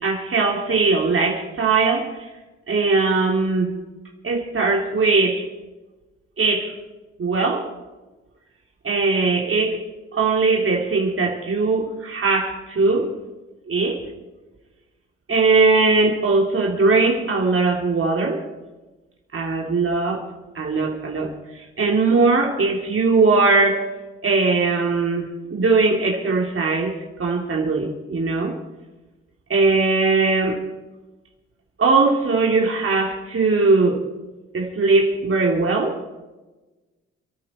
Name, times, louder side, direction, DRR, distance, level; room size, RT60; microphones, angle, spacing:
voice 1, 0.0-2.1 2.7-3.7 4.2-5.5 6.4-6.8 7.2-7.7 8.8-9.8 10.1-13.1 13.7-14.0 15.3-18.4 19.3-20.2 20.5-23.8 24.2-28.6 29.5-30.6 31.8-34.0 34.5-36.0, right 3 dB, 45° right, 0 dB, 3.2 m, -20 dB
28.5 x 10.0 x 4.4 m, 1.1 s
hypercardioid pair, 45°, 30 cm